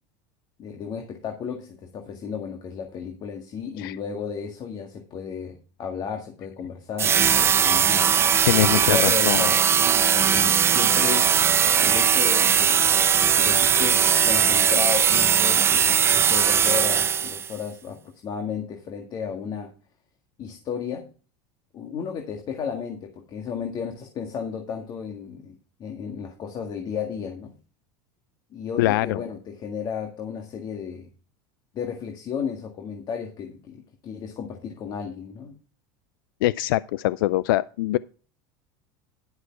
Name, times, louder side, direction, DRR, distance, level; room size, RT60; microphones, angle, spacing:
voice 1, 0.6-8.1 8.8-11.3 11.8-12.9 13.4-19.7 20.4-21.1 21.7-27.5 28.5-31.1 31.7-35.5, left 7 dB, 40° left, 1.8 m, -33 dB
sound 1, 7.0-17.5, right 8 dB, 20° right, 0.4 m, -19 dB
voice 2, 8.5-9.5 28.8-29.2 36.4-38.0, left 16 dB, 85° left, 0.4 m, -23 dB
11.0 x 6.6 x 4.6 m
supercardioid pair, 135°, 11 cm